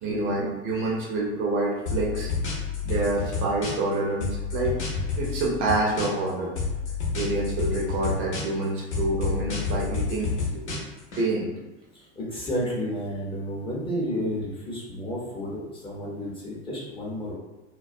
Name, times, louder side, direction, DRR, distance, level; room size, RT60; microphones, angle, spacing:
voice 1, 0.0-2.3 2.8-4.8 5.2-6.5 7.1-10.8 11.2-11.6, right 2 dB, 35° right, -3 dB, 0.5 m, -27 dB
sound 1, 1.9-3.9 4.2-6.3 6.6-8.6 8.9-11.2, left 5 dB, 75° left, 0.7 m, -29 dB
voice 2, 11.9-17.3, equal, 15° left, -5 dB, 0.6 m, -31 dB
2.3 x 2.2 x 2.5 m, 1.1 s
figure-of-eight pair, 80°, 35 cm